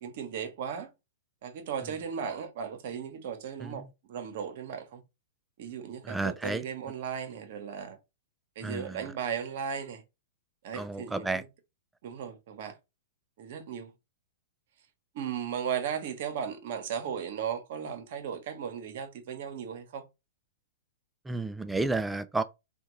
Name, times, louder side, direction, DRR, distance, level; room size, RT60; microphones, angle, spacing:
voice 1, 0.0-0.9 1.4-3.8 4.1-5.0 5.6-8.0 8.6-10.0 10.6-11.5 12.0-12.7 13.4-13.9 15.1-20.0, right 7 dB, 60° right, 0.8 m, -36 dB
voice 2, 6.0-6.6 8.6-9.0 10.7-11.4 21.3-22.4, right 3 dB, 5° right, 0.3 m, -31 dB
3.3 x 2.3 x 3.0 m
hypercardioid pair, 125°, 0 cm